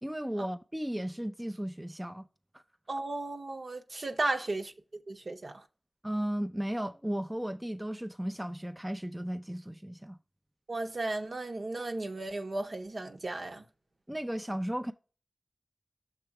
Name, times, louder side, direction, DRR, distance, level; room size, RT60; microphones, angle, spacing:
voice 1, 0.0-2.2 2.5-2.6 6.0-10.2 14.1-14.9, equal, 10° right, 0.5 m, -35 dB
voice 2, 2.9-4.7 5.1-5.6 10.7-13.6, right 2 dB, 65° right, 0.9 m, -35 dB
6.7 x 3.0 x 5.9 m
wide cardioid pair, 55°, 0 cm